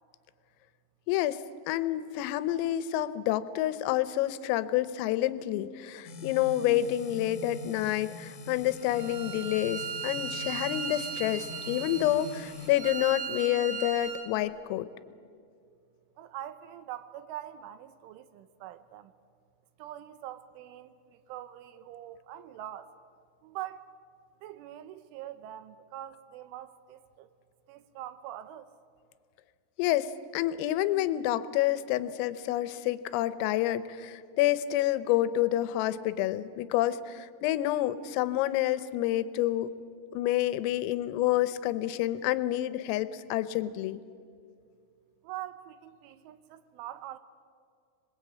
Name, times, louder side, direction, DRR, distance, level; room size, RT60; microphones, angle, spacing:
voice 1, 1.1-14.9 29.8-39.7 40.1-44.0, left 13 dB, 85° left, 3.5 m, -28 dB
sound 1, 6.0-12.7, left 2 dB, 65° left, 1.7 m, -44 dB
Bowed string instrument, 8.9-14.3, right 6 dB, 60° right, 2.7 m, -37 dB
voice 2, 16.2-19.1 19.8-23.0 23.4-23.9 24.4-27.3 27.7-28.7 45.2-47.2, right 12 dB, 80° right, 3.2 m, -43 dB
26.0 x 21.0 x 8.6 m
omnidirectional pair, 5.9 m